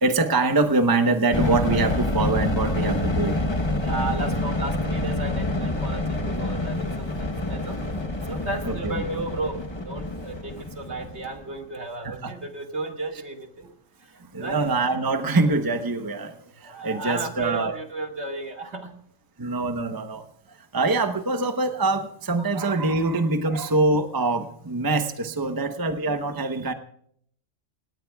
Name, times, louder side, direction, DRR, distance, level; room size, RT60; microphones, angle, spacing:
voice 1, 0.0-3.3 8.7-9.2 12.0-12.3 14.3-16.3 16.6-17.8 19.4-20.2 20.7-26.7, right 3 dB, 20° right, 7 dB, 0.9 m, -24 dB
sound 1, 1.3-11.5, left 1 dB, 25° left, 1.0 m, -27 dB
voice 2, 3.8-7.8 8.3-13.7 14.4-14.6 16.7-18.9, right 3 dB, 60° right, 3 dB, 2.2 m, -34 dB
28.0 x 18.5 x 2.3 m, 0.65 s
omnidirectional pair, 1.3 m